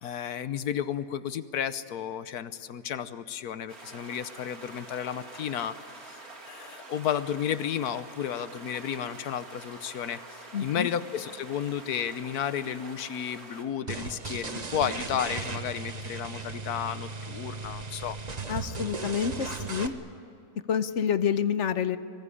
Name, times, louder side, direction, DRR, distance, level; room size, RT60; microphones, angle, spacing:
voice 1, 0.0-5.7 6.1-6.2 6.4-18.2, left 9 dB, 80° left, 13 dB, 1.4 m, -32 dB
sound 1, 3.7-13.6, right 2 dB, 70° right, 3.2 m, -46 dB
voice 2, 10.5-10.9 18.5-19.9 20.7-22.0, left 7 dB, 55° left, 12 dB, 1.1 m, -28 dB
sound 2, 13.9-19.9, right 4 dB, 30° right, 1.2 m, -36 dB
25.5 x 20.5 x 9.9 m, 2.5 s
omnidirectional pair, 1.6 m